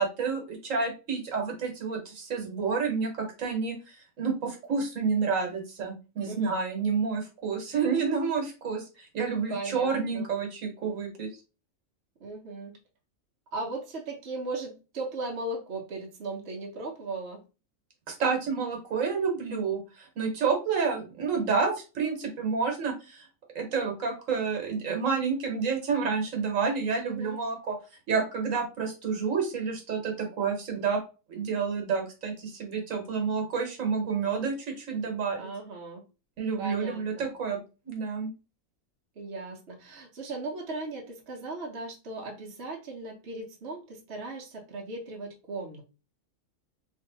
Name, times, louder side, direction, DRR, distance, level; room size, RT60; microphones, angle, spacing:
voice 1, 0.0-11.3 18.1-23.3 23.5-27.8 28.1-31.0 31.3-35.5 36.4-37.6 37.8-38.3, right 5 dB, 70° right, 3 dB, 1.4 m, -29 dB
voice 2, 6.2-6.6 9.5-10.3 12.2-12.8 13.5-17.4 27.0-27.4 35.4-36.0 36.6-37.3 39.2-45.8, right 2 dB, 55° right, -1 dB, 1.0 m, -37 dB
3.2 x 2.7 x 3.8 m, 0.32 s
omnidirectional pair, 1.4 m